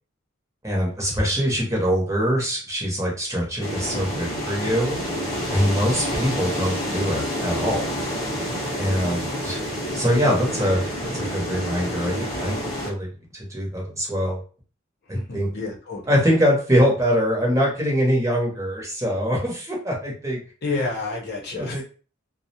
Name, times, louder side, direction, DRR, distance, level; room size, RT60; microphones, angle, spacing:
voice 1, 0.6-5.0 5.5-8.0 8.8-9.6 9.9-14.4 15.1-15.5 16.1-20.4 20.7-20.8 21.5-21.8, equal, 15° right, -3 dB, 0.8 m, -23 dB
sound 1, 3.6-12.9, equal, 20° left, 0.7 m, -28 dB
voice 2, 15.1-16.2 20.6-21.8, left 3 dB, 55° left, -1 dB, 0.7 m, -30 dB
2.4 x 2.1 x 2.7 m, 0.37 s
head